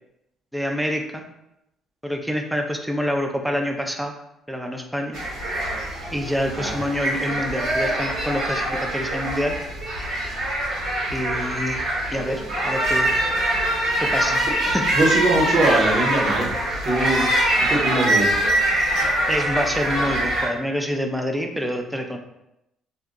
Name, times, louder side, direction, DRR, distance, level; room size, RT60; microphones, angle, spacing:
voice 1, 0.5-1.2 2.0-4.1 4.5-5.2 6.1-9.6 11.1-13.1 14.0-14.8 19.3-22.2, equal, 5° right, 3 dB, 0.5 m, -27 dB
sound 1, 5.1-20.5, right 1 dB, 80° right, 1.5 m, -23 dB
voice 2, 14.9-16.5 16.8-17.2 17.6-18.3, right 2 dB, 65° right, -4 dB, 1.2 m, -22 dB
2.7 x 2.3 x 3.7 m, 0.86 s
supercardioid pair, 70°, 0 cm